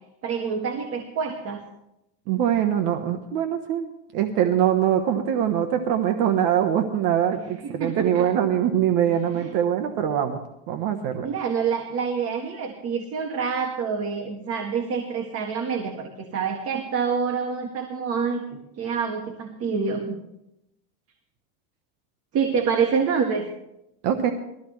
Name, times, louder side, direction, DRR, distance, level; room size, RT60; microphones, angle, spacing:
voice 1, 0.2-1.6 7.3-8.3 9.1-9.5 11.2-18.4 18.8-20.2 22.3-23.5, right 6 dB, 35° right, 3 dB, 1.5 m, -27 dB
voice 2, 2.3-10.4 10.7-11.3 24.0-24.3, right 9 dB, 55° right, 6 dB, 1.2 m, -23 dB
20.5 x 14.0 x 3.2 m, 0.85 s
supercardioid pair, 145°, 41 cm